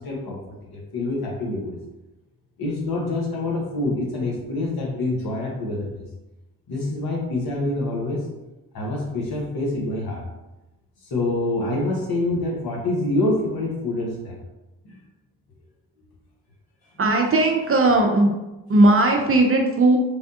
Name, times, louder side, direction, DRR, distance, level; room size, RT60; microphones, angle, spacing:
voice 1, 0.0-1.8 2.6-6.0 6.7-8.3 8.7-10.2 11.1-14.4 14.8-15.0, left 2 dB, 55° left, -2 dB, 1.1 m, -26 dB
voice 2, 17.0-18.3 18.7-20.0, right 2 dB, 30° right, 2 dB, 0.5 m, -17 dB
3.4 x 2.2 x 2.7 m, 1.0 s
supercardioid pair, 50°, 43 cm